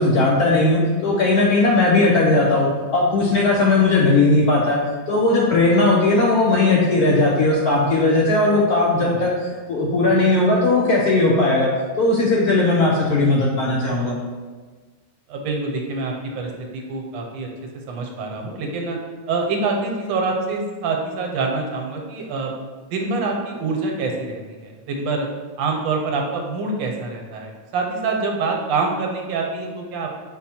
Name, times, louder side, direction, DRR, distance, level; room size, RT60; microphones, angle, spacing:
voice 1, 0.0-4.8 5.1-11.7 12.0-14.2, left 2 dB, 75° left, -3 dB, 0.9 m, -18 dB
voice 2, 15.3-17.5 17.9-19.0 19.3-22.5 22.8-25.3 25.6-30.2, right 3 dB, 80° right, 1 dB, 1.4 m, -26 dB
5.9 x 2.1 x 4.2 m, 1.4 s
omnidirectional pair, 2.1 m